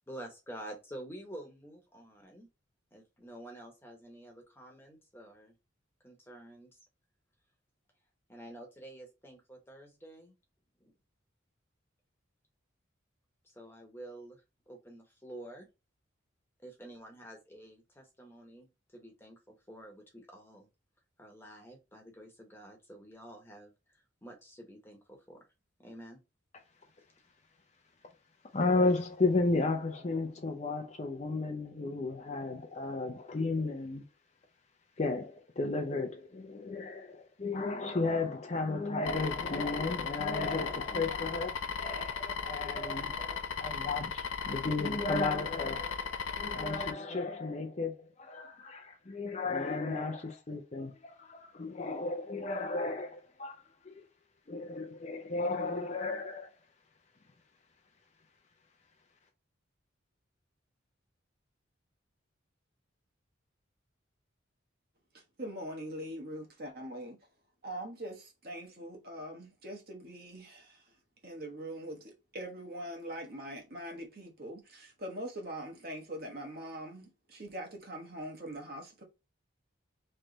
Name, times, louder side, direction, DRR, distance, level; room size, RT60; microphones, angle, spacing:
voice 1, 0.1-2.5 2.9-5.5 6.0-6.8 8.3-10.3 10.8-10.9 13.4-15.7 16.6-20.7 21.2-25.4 25.8-26.2, right 1 dB, 10° left, 1.1 m, -49 dB
voice 2, 28.5-34.0 35.0-53.6 53.8-53.9 54.5-56.5, left 3 dB, 35° left, 0.5 m, -34 dB
sound 1, 39.0-46.9, left 6 dB, 85° left, 0.5 m, -36 dB
voice 3, 65.1-67.2 67.6-70.9 71.2-79.0, right 1 dB, 50° right, 1.3 m, -42 dB
3.3 x 3.2 x 3.8 m
head